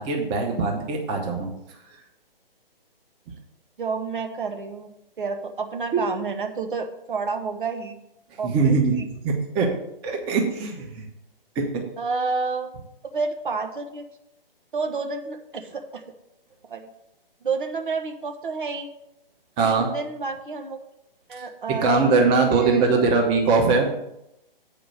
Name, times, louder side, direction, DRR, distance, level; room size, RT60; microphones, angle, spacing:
voice 1, 0.0-1.5 5.9-6.0 8.4-8.9 9.2-9.7 10.0-11.0 11.5-11.8 19.6-19.9 21.8-23.9, right 4 dB, 20° right, 1 dB, 1.2 m, -21 dB
voice 2, 3.8-8.0 8.4-9.0 12.0-12.8 13.1-14.0 14.7-16.0 16.7-16.9 17.4-18.9 19.6-20.8 21.3-22.8, right 4 dB, 60° right, 5 dB, 1.2 m, -30 dB
8.3 x 5.0 x 7.4 m, 0.84 s
figure-of-eight pair, 135°, 29 cm